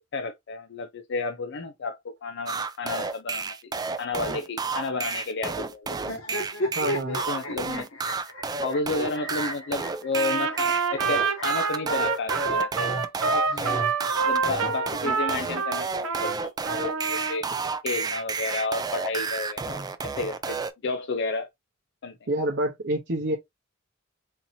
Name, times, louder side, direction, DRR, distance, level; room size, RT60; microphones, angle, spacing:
voice 1, 0.1-3.6 4.0-6.0 7.0-7.9 8.6-12.9 13.2-13.8 14.2-17.5 17.8-21.5 22.0-22.2, left 3 dB, 55° left, 0.5 m, -32 dB
sound 1, 2.5-20.7, right 4 dB, 20° right, 0.3 m, -31 dB
sound 2, 6.0-12.2 13.1-14.3, equal, 80° left, 1.8 m, -35 dB
voice 2, 6.7-7.2 22.3-23.4, right 1 dB, 55° right, 0.8 m, -27 dB
Trumpet, 10.1-16.4 16.6-17.4, right 5 dB, 90° right, 0.7 m, -27 dB
4.3 x 2.7 x 2.6 m
head